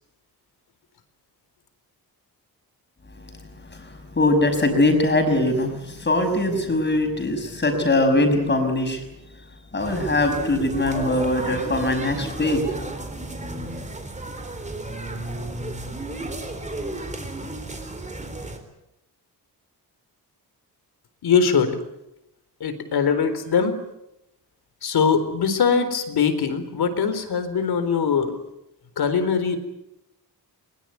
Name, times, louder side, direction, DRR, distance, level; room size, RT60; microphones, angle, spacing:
voice 1, 3.3-9.0 9.7-12.9, left 2 dB, 30° left, 6 dB, 5.9 m, -22 dB
sound 1, 9.8-18.6, right 2 dB, 20° right, 4.1 m, -33 dB
voice 2, 21.2-21.8 22.6-23.8 24.8-28.4 29.0-29.6, left 6 dB, 75° left, 10 dB, 4.1 m, -21 dB
23.0 x 23.0 x 9.5 m, 0.87 s
wide cardioid pair, 155°, 38 cm